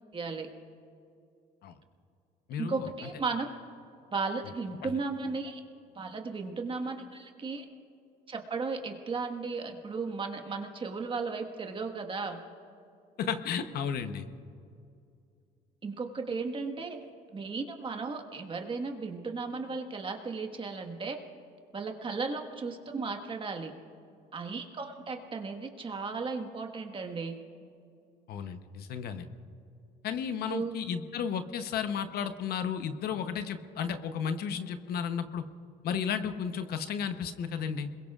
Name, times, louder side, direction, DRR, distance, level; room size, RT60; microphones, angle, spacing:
voice 1, 0.1-0.5 2.6-3.5 4.1-5.6 5.9-7.6 8.3-12.4 15.8-17.0 17.3-21.2 21.7-23.7 24.3-27.4 30.5-30.8, right 4 dB, 30° right, 4 dB, 1.5 m, -35 dB
voice 2, 2.5-2.9 4.8-4.9 13.2-14.3 28.3-29.3 30.0-35.4 35.8-37.9, left 7 dB, 65° left, 9 dB, 0.9 m, -33 dB
26.5 x 21.5 x 2.4 m, 2.4 s
cardioid pair, 110°, 17 cm